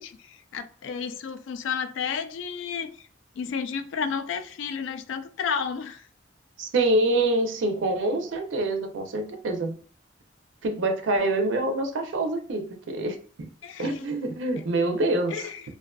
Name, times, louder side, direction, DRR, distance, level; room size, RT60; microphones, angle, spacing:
voice 1, 0.0-3.1 3.4-6.1 13.6-14.1 14.6-14.7 15.3-15.6, left 6 dB, 75° left, 0.3 m, -32 dB
voice 2, 6.6-9.8 10.6-13.2 13.8-15.5, right 2 dB, 75° right, 0.4 m, -26 dB
2.5 x 2.3 x 2.2 m
head